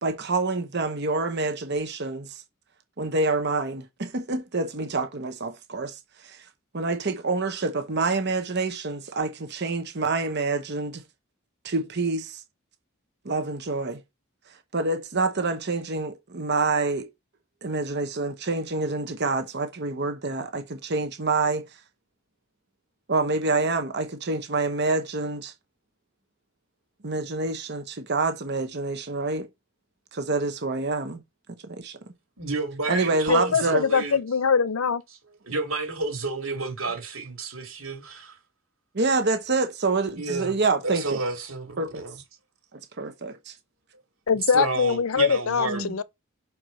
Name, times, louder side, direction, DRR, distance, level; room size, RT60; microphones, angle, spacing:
voice 1, 0.0-2.3 3.0-6.4 6.7-11.0 11.6-12.4 13.2-14.0 14.7-17.1 17.6-21.6 23.1-25.5 27.0-29.5 30.1-31.2 31.6-32.0 32.9-33.8 38.9-41.2 41.8-42.0 43.0-43.5 45.6-45.9, right 3 dB, 50° right, 1.0 m, -27 dB
voice 2, 32.4-34.2 35.4-38.4 40.2-40.5 40.8-42.2 44.5-45.8, right 3 dB, 75° right, 2.6 m, -30 dB
voice 3, 33.3-35.0 44.3-46.0, left 6 dB, 75° left, 0.6 m, -23 dB
6.0 x 4.8 x 5.1 m
head